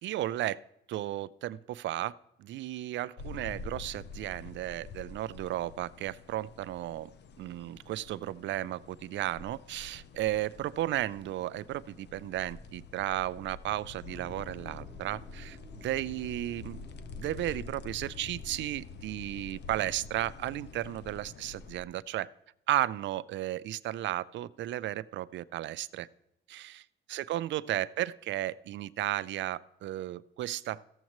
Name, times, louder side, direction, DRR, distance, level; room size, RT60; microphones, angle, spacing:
voice 1, 0.0-0.6 0.9-2.1 2.4-7.1 7.4-16.8 17.2-22.3 22.7-26.1 26.5-26.8 27.1-30.8, right 14 dB, 70° right, 17 dB, 0.4 m, -34 dB
sound 1, 3.2-21.8, left 4 dB, 60° left, 0.7 m, -47 dB
sound 2, 14.0-21.0, equal, 75° left, 4.1 m, -54 dB
14.5 x 7.2 x 3.0 m, 0.81 s
cardioid pair, 90°, 20 cm